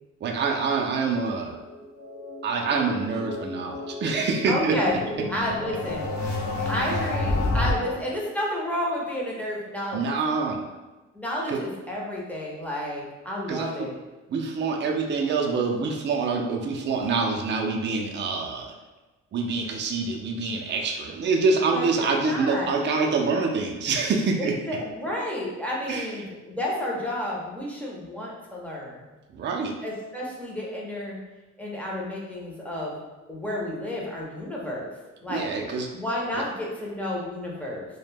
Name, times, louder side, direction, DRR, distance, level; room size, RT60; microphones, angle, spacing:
voice 1, 0.2-1.6 2.4-4.8 9.9-10.6 11.5-11.6 13.5-13.9 14.3-18.7 19.3-24.6 25.9-26.1 29.3-29.7 35.3-35.9, right 4 dB, 40° right, 1 dB, 0.4 m, -26 dB
sound 1, 1.6-7.7, left 2 dB, 65° left, 0.7 m, -30 dB
voice 2, 4.5-4.9 5.3-6.1 6.6-10.1 11.1-14.0 21.7-22.7 24.4-29.0 29.8-31.2 31.6-33.0 33.3-34.9 35.2-35.4 35.9-37.9, left 1 dB, 5° left, -4 dB, 0.6 m, -31 dB
2.1 x 2.0 x 3.2 m, 1.1 s
cardioid pair, 90°, 30 cm